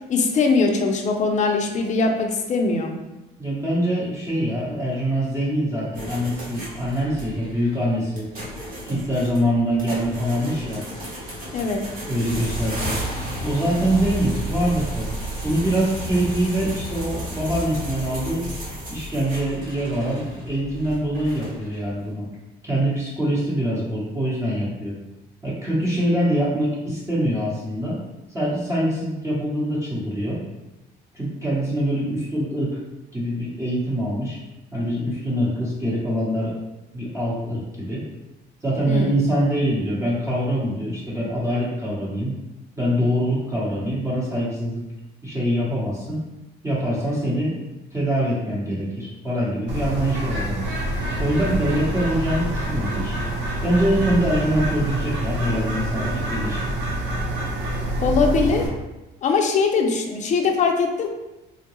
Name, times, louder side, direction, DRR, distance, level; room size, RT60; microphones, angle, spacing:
voice 1, 0.1-2.9 11.5-11.8 38.9-39.1 58.0-58.7 59.2-61.1, left 4 dB, 40° left, 2 dB, 0.5 m, -21 dB
voice 2, 3.4-8.3 8.8-10.8 12.1-13.0 13.4-15.1 15.4-18.5 18.9-22.3 22.6-25.0 25.4-28.0 28.3-30.4 31.1-32.8 33.1-34.4 34.7-36.5 36.9-38.0 38.6-42.3 42.8-44.8 45.2-46.2 46.6-50.6 51.2-53.1 53.6-56.6, right 1 dB, 15° right, -7 dB, 0.9 m, -24 dB
sound 1, 5.9-21.9, equal, 50° right, 1.1 m, -33 dB
Bird, 49.7-58.7, right 1 dB, 75° right, 0.8 m, -26 dB
3.7 x 2.2 x 3.0 m, 0.99 s
cardioid pair, 130°, 19 cm